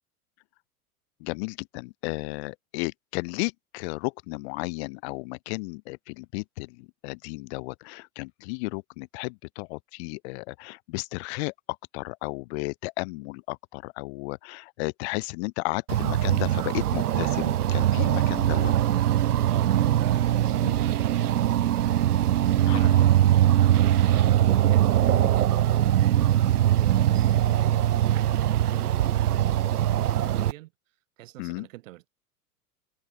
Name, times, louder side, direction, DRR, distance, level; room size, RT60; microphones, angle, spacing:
voice 1, 1.2-11.5 11.9-18.7 20.6-20.8 22.7-22.9 25.0-25.3 31.4-31.7, left 28 dB, 45° left, 1.1 m, -34 dB
sound 1, 15.9-30.5, right 12 dB, 75° right, 0.6 m, -22 dB
voice 2, 19.5-22.3 22.7-30.7 31.2-32.1, right 18 dB, 55° right, 3.1 m, -45 dB
figure-of-eight pair, 85°, 46 cm